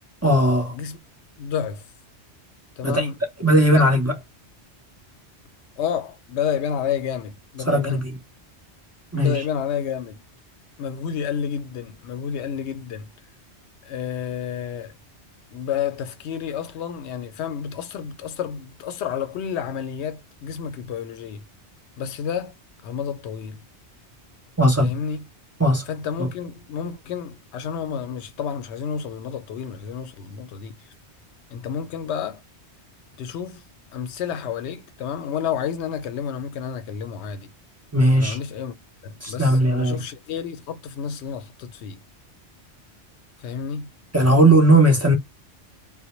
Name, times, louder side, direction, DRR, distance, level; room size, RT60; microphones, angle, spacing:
voice 1, 0.2-0.7 2.8-3.1 3.4-4.1 7.7-8.2 9.1-9.4 24.6-24.9 25.6-25.8 26.2-26.3 37.9-38.4 39.2-40.0 44.1-45.2, right 1 dB, 25° right, 0.3 m, -17 dB
voice 2, 1.4-1.8 2.8-3.2 3.5-3.9 5.8-8.0 9.1-10.2 10.8-13.1 13.8-14.9 15.5-21.4 22.0-22.5 22.8-23.6 24.8-25.2 25.9-30.8 31.5-32.4 33.2-33.6 33.9-37.5 38.1-38.8 39.0-42.0 43.4-43.9, left 7 dB, 75° left, 0.8 m, -30 dB
2.1 x 2.0 x 2.9 m
omnidirectional pair, 1.1 m